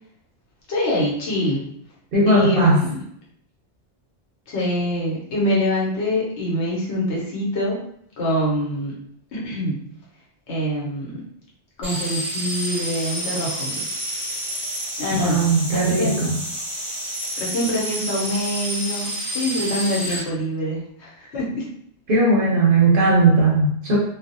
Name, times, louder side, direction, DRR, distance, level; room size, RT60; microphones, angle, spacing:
voice 1, 0.7-1.6 2.3-3.0 4.5-7.8 8.2-9.0 9.3-9.9 10.5-11.2 11.8-14.0 15.0-16.2 17.4-21.7, equal, 75° left, -5 dB, 1.1 m, -25 dB
voice 2, 2.1-2.8 15.2-16.4 22.1-24.0, right 2 dB, 60° right, -2 dB, 0.7 m, -17 dB
sound 1, 11.8-20.2, equal, ahead, 0.5 m, -29 dB
2.3 x 2.0 x 2.6 m, 0.68 s
omnidirectional pair, 1.2 m